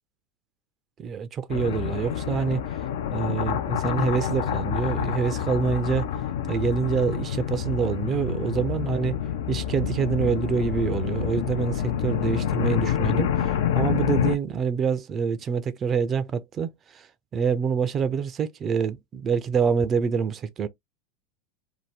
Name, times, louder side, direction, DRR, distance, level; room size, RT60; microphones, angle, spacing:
voice 1, 1.0-2.6 3.1-6.1 6.5-9.2 9.5-17.1 17.3-20.7, right 6 dB, 35° right, 0.3 m, -26 dB
sound 1, 1.5-14.4, left 9 dB, 75° left, 0.3 m, -27 dB
2.7 x 2.1 x 3.2 m
hypercardioid pair, 95°, 0 cm